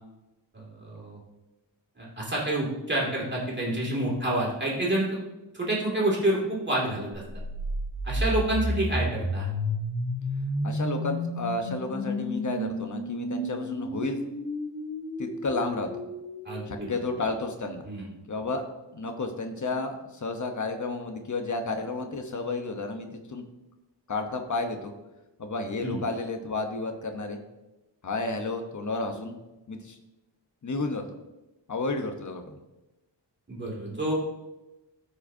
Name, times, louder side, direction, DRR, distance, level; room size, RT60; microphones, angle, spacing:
voice 1, 0.5-1.2 2.0-5.2 5.6-7.2 8.0-9.5 16.4-17.0 17.8-18.1 25.8-26.0 33.5-34.1, right 1 dB, 25° right, -5 dB, 2.4 m, -28 dB
sound 1, 7.3-17.2, left 1 dB, 15° left, 3.0 m, -32 dB
voice 2, 10.6-14.2 15.2-15.9 16.7-17.9 18.3-18.6 18.9-23.4 24.1-24.9 25.4-27.4 28.0-29.4 29.7-30.0 30.6-31.0 31.7-32.6, left 3 dB, 40° left, 5 dB, 1.0 m, -31 dB
13.5 x 5.0 x 2.7 m, 1.0 s
wide cardioid pair, 155°, 44 cm